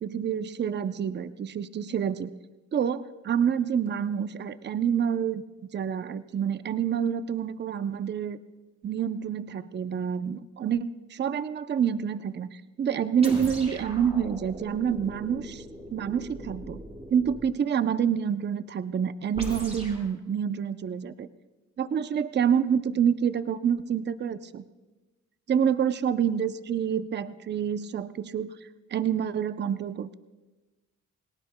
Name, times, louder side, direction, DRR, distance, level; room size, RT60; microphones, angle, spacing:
voice 1, 0.0-2.3 2.7-5.4 5.7-8.4 8.8-15.6 15.9-16.8 17.1-21.3 21.8-24.6 25.5-28.5 28.9-30.1, right 8 dB, 35° right, 12 dB, 0.6 m, -27 dB
sound 1, 13.2-17.5 19.3-20.1, right 1 dB, 20° right, 5.1 m, -40 dB
28.5 x 18.0 x 2.2 m, 1.2 s
cardioid pair, 90°, 30 cm